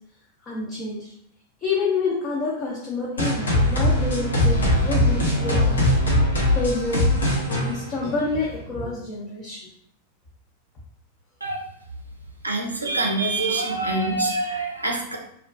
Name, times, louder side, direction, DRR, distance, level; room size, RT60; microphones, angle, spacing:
voice 1, 0.4-1.1 1.6-5.9 6.5-7.1 7.5-9.7, left 3 dB, 30° left, -4 dB, 0.5 m, -28 dB
sound 1, 3.2-8.6, left 1 dB, 70° left, 0.7 m, -21 dB
voice 2, 12.4-15.2, right 2 dB, 80° right, 1 dB, 0.4 m, -25 dB
2.4 x 2.1 x 2.4 m, 0.69 s
figure-of-eight pair, 90°, 0 cm